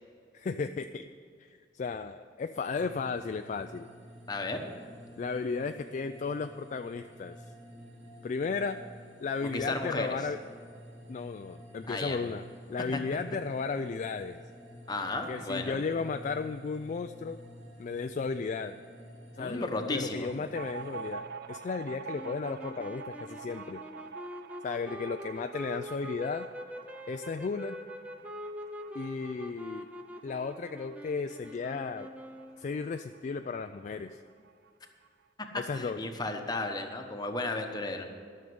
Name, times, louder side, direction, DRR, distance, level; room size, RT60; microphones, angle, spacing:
voice 1, 0.3-1.1 1.4-3.9 5.2-7.4 8.2-8.8 9.2-10.4 11.1-14.4 15.3-17.4 17.8-18.8 19.3-23.8 24.6-26.5 27.1-27.8 28.9-29.9 30.2-32.1 32.6-34.2 35.6-36.0, left 4 dB, 40° left, 8 dB, 0.3 m, -34 dB
sound 1, 2.8-21.1, equal, 40° right, 2.5 m, -51 dB
voice 2, 4.3-4.6 9.4-10.1 11.9-12.2 12.9-13.0 14.9-15.8 19.4-20.3 35.7-38.1, left 2 dB, 25° left, 4 dB, 1.1 m, -34 dB
sound 2, 20.5-33.7 33.9-34.0 34.3-35.1, right 5 dB, 60° right, 0.5 m, -46 dB
sound 3, 22.1-32.9, left 1 dB, 10° right, 0.7 m, -44 dB
12.5 x 6.6 x 9.4 m, 2.1 s
head